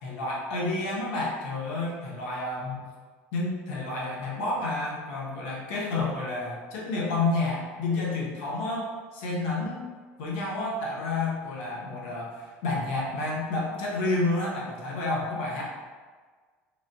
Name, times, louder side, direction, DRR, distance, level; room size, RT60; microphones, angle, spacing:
voice 1, 0.0-2.8 3.3-9.8 10.2-15.6, left 2 dB, 75° left, -4 dB, 0.9 m, -30 dB
3.2 x 2.6 x 2.7 m, 1.5 s
hypercardioid pair, 85°, 6 cm